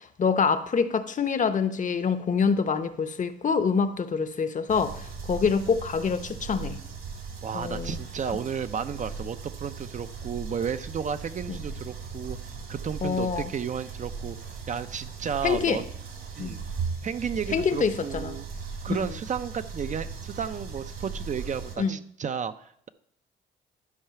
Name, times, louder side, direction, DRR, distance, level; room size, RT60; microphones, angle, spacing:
voice 1, 0.2-6.8 7.5-8.0 11.5-11.6 13.0-13.5 15.4-15.8 16.4-16.6 17.5-18.4 18.9-19.0 21.8-22.0, left 5 dB, 40° left, 0.7 m, -26 dB
sound 1, 4.7-21.8, right 5 dB, 65° right, 2.4 m, -38 dB
voice 2, 7.4-12.4 12.7-14.4 14.7-15.8 16.4-16.6 17.0-18.4 18.8-22.9, right 7 dB, 40° right, 0.5 m, -33 dB
12.0 x 4.7 x 5.7 m
cardioid pair, 90°, 20 cm